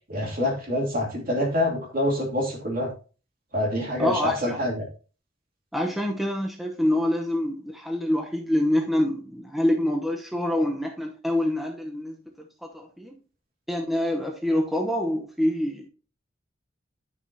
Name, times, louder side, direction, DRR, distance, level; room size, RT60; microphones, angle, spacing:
voice 1, 0.1-2.9 3.5-4.8, left 1 dB, 50° right, 0 dB, 2.9 m, -26 dB
voice 2, 4.0-4.6 5.7-12.1 12.7-13.1 13.7-15.9, left 1 dB, ahead, 1 dB, 0.9 m, -26 dB
10.5 x 6.3 x 2.8 m, 0.36 s
head